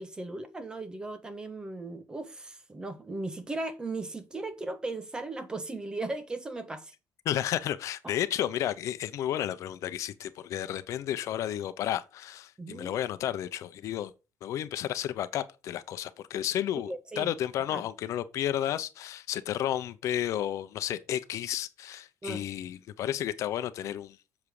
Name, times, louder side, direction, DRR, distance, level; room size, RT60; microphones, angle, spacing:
voice 1, 0.0-6.9 8.0-8.2 12.6-12.9 16.9-17.3 17.7-17.8 22.2-22.4, right 2 dB, 15° right, 1.3 m, -37 dB
voice 2, 7.2-14.1 14.4-24.2, left 11 dB, 65° left, 0.8 m, -32 dB
7.4 x 7.3 x 4.9 m
cardioid pair, 165°, 6 cm